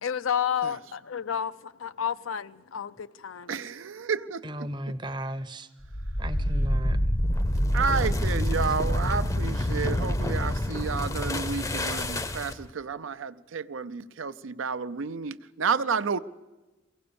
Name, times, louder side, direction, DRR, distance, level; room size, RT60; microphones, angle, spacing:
voice 1, 0.0-3.6, left 8 dB, 85° left, 0.5 m, -31 dB
voice 2, 3.5-4.9 7.7-16.2, right 5 dB, 75° right, 0.6 m, -31 dB
voice 3, 4.4-5.7 6.2-7.0, equal, 25° right, 0.7 m, -35 dB
sound 1, 5.8-12.7, left 1 dB, 15° left, 0.6 m, -27 dB
23.5 x 16.5 x 6.9 m
head